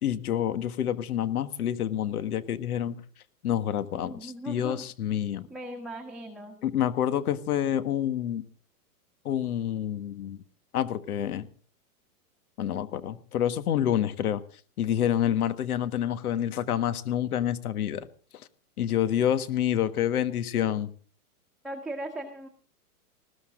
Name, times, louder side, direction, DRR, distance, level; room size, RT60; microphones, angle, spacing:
voice 1, 0.0-3.0 3.4-5.5 6.6-8.4 9.2-10.4 10.7-11.5 12.6-14.4 14.8-18.1 18.8-20.9, left 10 dB, 70° left, 12 dB, 1.7 m, -28 dB
voice 2, 4.0-4.8 5.5-6.6 21.6-22.5, right 1 dB, ahead, -1 dB, 1.4 m, -38 dB
20.0 x 15.0 x 3.8 m, 0.41 s
hypercardioid pair, 160°, 46 cm